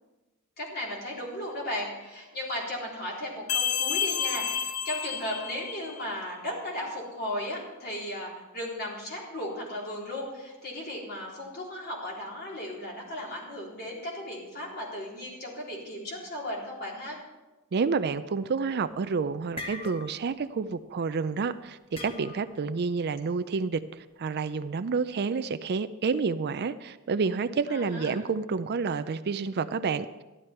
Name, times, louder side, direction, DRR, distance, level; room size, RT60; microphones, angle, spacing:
voice 1, 0.6-17.2 27.7-28.1, left 1 dB, 45° left, -3 dB, 3.7 m, -36 dB
sound 1, 3.5-6.1, left 8 dB, 80° left, 0.9 m, -30 dB
voice 2, 17.7-30.2, right 5 dB, 45° right, 12 dB, 0.4 m, -29 dB
sound 2, 18.7-19.0 19.3-20.4 20.7-20.9 21.9-22.6, left 3 dB, 25° left, 1.1 m, -41 dB
13.5 x 11.0 x 4.4 m, 1.1 s
head